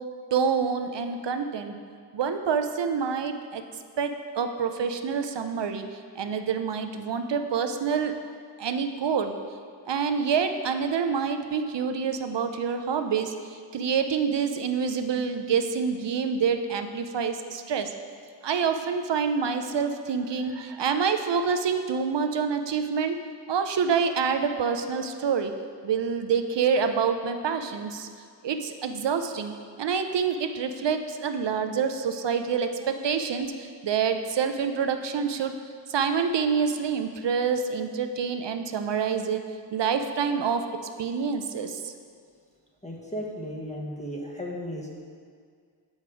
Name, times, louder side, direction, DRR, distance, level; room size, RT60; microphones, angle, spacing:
voice 1, 0.3-1.7 2.1-3.6 4.0-5.8 6.2-8.1 8.6-9.3 9.9-13.3 13.7-17.9 18.4-23.2 23.5-25.5 25.8-28.1 28.4-29.5 29.8-35.5 35.9-39.4 39.7-40.6 41.0-41.9, right 6 dB, 75° right, 7 dB, 0.5 m, -27 dB
voice 2, 42.8-45.0, equal, 15° left, -2 dB, 1.2 m, -35 dB
6.6 x 5.3 x 4.8 m, 2.1 s
wide cardioid pair, 50°, 43 cm